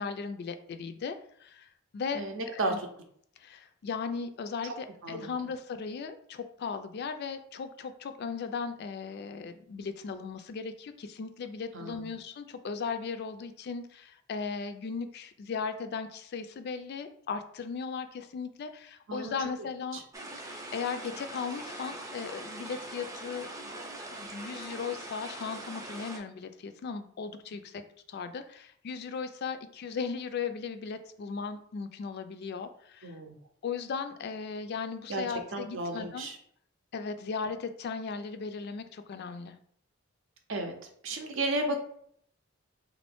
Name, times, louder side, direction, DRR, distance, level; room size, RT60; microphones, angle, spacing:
voice 1, 0.0-2.8 3.4-20.0 20.4-23.5 24.1-27.8 28.1-33.2 33.6-36.3 36.9-39.6, left 5 dB, 50° left, 9 dB, 0.3 m, -37 dB
voice 2, 2.1-2.9 5.0-5.3 11.7-12.1 19.1-19.3 19.9-20.0 33.0-33.4 35.1-35.2 35.5-36.4 40.5-40.7 41.0-41.8, right 2 dB, 65° right, 4 dB, 0.6 m, -33 dB
sound 1, 20.1-26.2, right 1 dB, 15° right, 0.5 m, -42 dB
3.3 x 2.6 x 3.4 m, 0.64 s
head